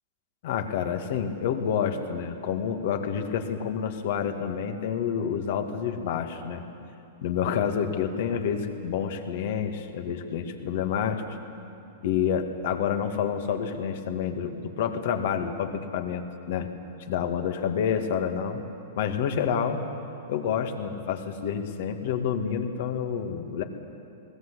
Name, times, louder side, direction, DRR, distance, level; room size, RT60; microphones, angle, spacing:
voice 1, 0.4-6.6 7.2-11.2 12.0-16.7 17.1-18.6 19.0-19.8 20.3-23.6, left 7 dB, 60° left, 6 dB, 2.2 m, -28 dB
21.0 x 18.0 x 8.4 m, 2.8 s
hypercardioid pair, 105°, 0 cm